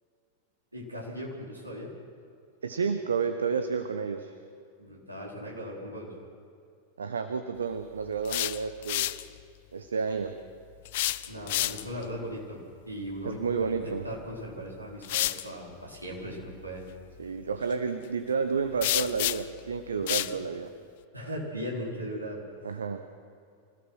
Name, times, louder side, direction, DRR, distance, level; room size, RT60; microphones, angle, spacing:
voice 1, 0.7-1.9 4.8-6.1 11.3-12.6 12.9-16.8 19.9-20.3 21.1-22.4, equal, 85° right, -3 dB, 4.6 m, -38 dB
voice 2, 2.6-4.3 7.0-9.2 9.7-10.3 13.2-14.0 17.2-20.7 22.6-23.0, right 5 dB, 70° right, 8 dB, 1.0 m, -31 dB
sound 1, 8.1-9.2 10.8-12.0 14.1-14.2 15.0-15.4 18.8-19.6 20.1-20.3, left 15 dB, 50° left, 0.6 m, -29 dB
26.0 x 16.5 x 6.2 m, 2.4 s
figure-of-eight pair, 90°, 0 cm